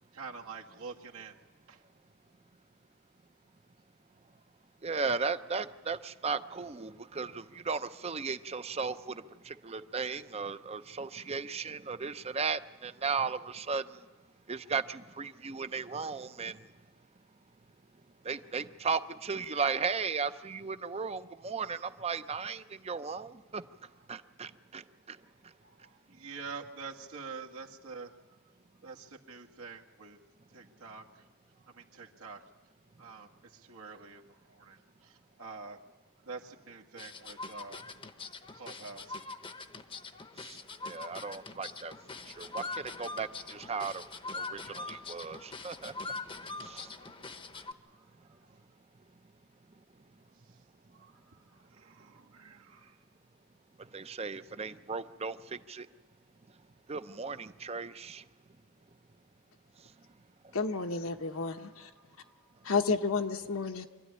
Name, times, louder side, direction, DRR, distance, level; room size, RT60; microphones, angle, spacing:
voice 1, 0.0-1.4 1.7-1.8 25.6-28.3 28.8-30.2 30.5-31.2 31.7-32.4 33.0-35.8 36.2-37.9 38.5-39.3 41.5-41.6 47.8-48.4 50.9-53.0 53.9-54.0 61.4-62.7, right 4 dB, 80° right, 1 dB, 1.8 m, -47 dB
voice 2, 4.8-14.0 14.5-16.6 18.2-23.6 24.1-25.2 40.4-41.9 42.3-44.0 44.3-45.9 46.6-46.9 53.9-55.9 56.9-58.2, right 5 dB, 30° right, 12 dB, 0.6 m, -36 dB
sound 1, 37.0-47.7, left 3 dB, 25° left, 0.9 m, -43 dB
voice 3, 60.5-61.9 62.6-63.9, left 4 dB, 75° left, 6 dB, 1.2 m, -31 dB
25.0 x 13.5 x 9.8 m, 1.3 s
head